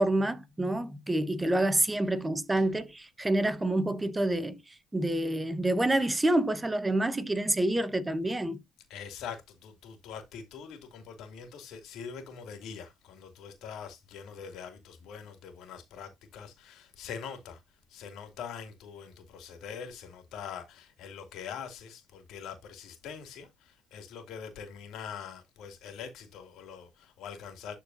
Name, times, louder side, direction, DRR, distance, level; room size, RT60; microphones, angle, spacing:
voice 1, 0.0-4.6 4.9-8.6, right 1 dB, 15° right, 1.2 m, -27 dB
voice 2, 8.9-17.6 17.9-27.8, left 7 dB, 75° left, 2.6 m, -43 dB
12.5 x 4.5 x 2.7 m
supercardioid pair, 70°, 0 cm